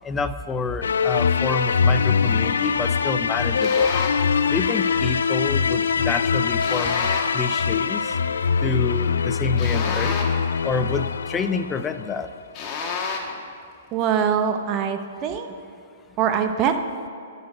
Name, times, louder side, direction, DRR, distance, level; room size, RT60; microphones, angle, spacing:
voice 1, 0.0-3.9 4.5-7.1 7.3-8.1 8.6-10.2 10.6-12.3, left 4 dB, 15° left, 10 dB, 0.4 m, -28 dB
sound 1, 0.8-12.2, left 6 dB, 75° left, 0.3 m, -23 dB
sound 2, 3.6-4.3 6.6-7.4 9.6-10.5 12.5-13.4, left 4 dB, 35° left, 1.3 m, -30 dB
voice 2, 13.9-15.5 16.2-16.8, right 8 dB, 35° right, 7 dB, 0.8 m, -23 dB
11.0 x 4.2 x 7.0 m, 2.4 s
hypercardioid pair, 120°, 0 cm